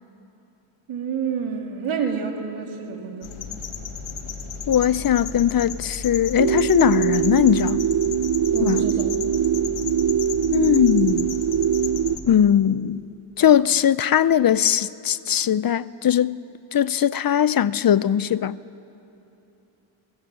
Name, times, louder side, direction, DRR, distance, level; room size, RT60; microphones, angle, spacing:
voice 1, 0.9-3.3 8.5-9.1, right 6 dB, 85° right, 2.6 m, -28 dB
sound 1, 3.2-12.2, left 6 dB, 90° left, 1.6 m, -34 dB
voice 2, 4.7-7.8 8.6-8.8 10.5-11.4 12.2-13.0 13.4-18.6, left 9 dB, 45° left, 0.6 m, -20 dB
sound 2, 6.4-12.2, right 9 dB, 55° right, 0.8 m, -22 dB
23.0 x 22.0 x 7.5 m
cardioid pair, 60°, 48 cm